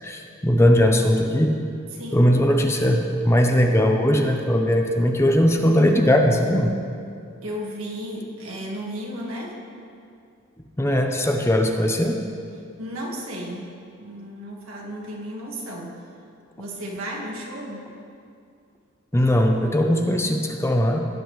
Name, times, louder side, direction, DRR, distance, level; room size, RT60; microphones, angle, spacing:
voice 1, 0.0-1.5 2.1-6.7 10.8-12.2 19.1-21.1, equal, 15° left, 3 dB, 0.7 m, -19 dB
voice 2, 1.9-2.3 7.4-9.6 12.8-13.7 14.0-16.1 16.6-17.8, equal, 85° right, -2 dB, 1.7 m, -34 dB
17.0 x 8.7 x 3.1 m, 2.4 s
head